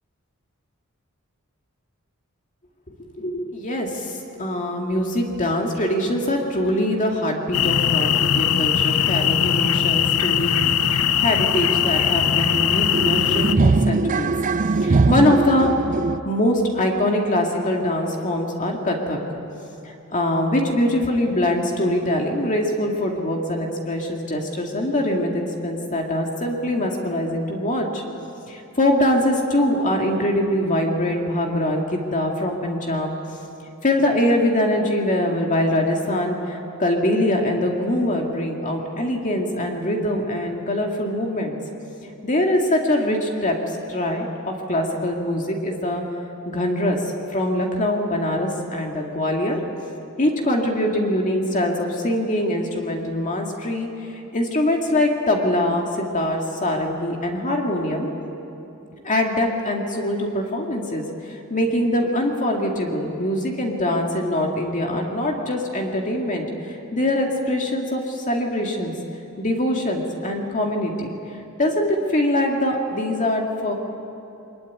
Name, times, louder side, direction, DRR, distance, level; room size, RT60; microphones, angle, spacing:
voice 1, 2.9-14.3 14.7-15.7 16.2-19.2 19.8-28.0 28.5-33.1 33.8-41.6 42.0-46.0 46.5-49.6 50.2-58.1 59.0-68.9 69.4-71.1 71.6-73.7, left 1 dB, 35° left, 1 dB, 2.3 m, -23 dB
sound 1, 7.5-13.5, left 9 dB, 75° left, 0.8 m, -20 dB
sound 2, 9.8-9.9 10.2-16.2, right 3 dB, 35° right, 0.5 m, -23 dB
23.0 x 20.5 x 9.5 m, 2.8 s
head